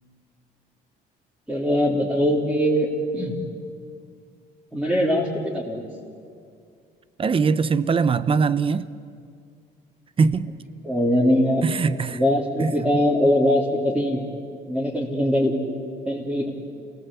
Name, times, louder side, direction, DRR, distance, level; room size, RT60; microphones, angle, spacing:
voice 1, 1.5-2.9 3.1-3.4 4.7-5.8 10.8-11.6 12.1-14.2 14.7-15.5 16.0-16.5, equal, 5° right, 3.6 m, -21 dB
voice 2, 7.2-8.9 10.2-10.5 11.6-12.2 12.6-12.7, right 5 dB, 30° right, 0.9 m, -21 dB
28.5 x 17.5 x 8.5 m
cardioid pair, 110°, 17 cm